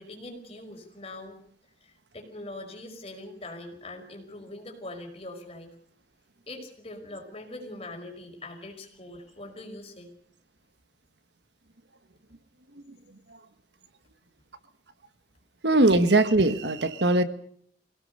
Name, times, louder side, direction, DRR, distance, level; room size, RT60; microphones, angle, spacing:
voice 1, 0.0-1.4 1.8-5.8 6.5-10.1, left 2 dB, 35° left, 3 dB, 5.4 m, -42 dB
voice 2, 15.6-17.2, right 2 dB, 70° right, 11 dB, 1.5 m, -20 dB
25.0 x 17.5 x 6.7 m, 0.62 s
head